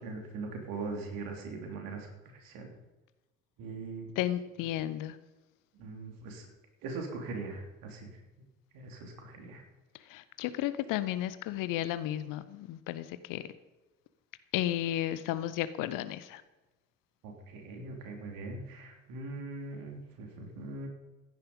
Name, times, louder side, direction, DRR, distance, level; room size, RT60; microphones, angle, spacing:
voice 1, 0.0-2.7 3.6-4.1 5.8-6.5 6.8-8.1 8.4-8.5 8.7-9.6 17.2-20.9, right 3 dB, 55° right, 3 dB, 3.5 m, -41 dB
voice 2, 4.2-5.2 10.1-13.4 14.5-16.4, left 13 dB, 50° left, 14 dB, 0.9 m, -33 dB
15.5 x 10.5 x 5.4 m, 1.1 s
figure-of-eight pair, 60°, 41 cm